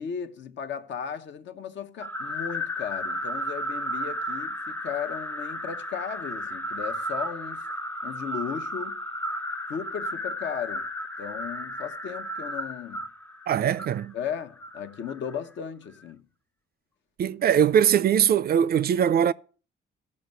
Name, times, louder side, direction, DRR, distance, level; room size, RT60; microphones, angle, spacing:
voice 1, 0.0-7.7 8.0-9.0 9.7-10.9 11.2-13.1 14.1-16.3, left 7 dB, 65° left, 0.9 m, -36 dB
sound 1, 2.0-15.4, equal, 10° left, 0.4 m, -34 dB
voice 2, 13.5-14.1 17.2-19.3, right 9 dB, 50° right, 0.4 m, -21 dB
13.0 x 5.4 x 6.7 m
cardioid pair, 90°, 20 cm